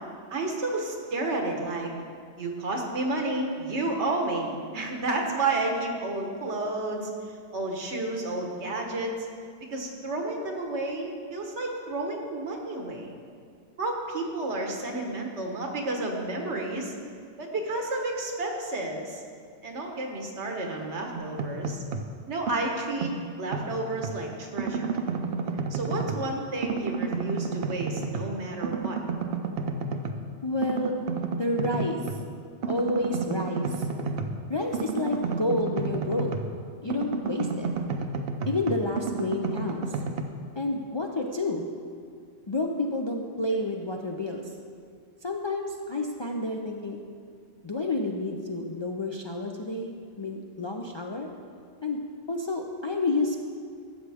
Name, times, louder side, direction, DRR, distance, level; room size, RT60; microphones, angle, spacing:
voice 1, 0.3-1.9 2.4-7.1 7.5-9.1 9.7-13.2 13.8-16.9 17.4-19.2 19.6-21.8 22.3-23.1 23.4-24.9 25.7-29.0, right 2 dB, 85° right, 1 dB, 1.5 m, -31 dB
sound 1, 21.1-22.1 22.5-24.2 24.6-26.3 26.6-28.4 28.6-30.2 30.6-32.2 32.6-36.6 36.9-40.2, right 4 dB, 65° right, 0.8 m, -31 dB
voice 2, 30.4-31.0 31.4-32.0 32.7-33.9 34.5-36.3 36.8-37.7 38.5-40.0 40.6-41.7 42.5-44.5 45.2-47.0 47.6-51.3 51.8-52.0 52.3-53.4, left 2 dB, 40° left, 1 dB, 0.4 m, -29 dB
13.0 x 7.9 x 3.5 m, 2.2 s
omnidirectional pair, 1.1 m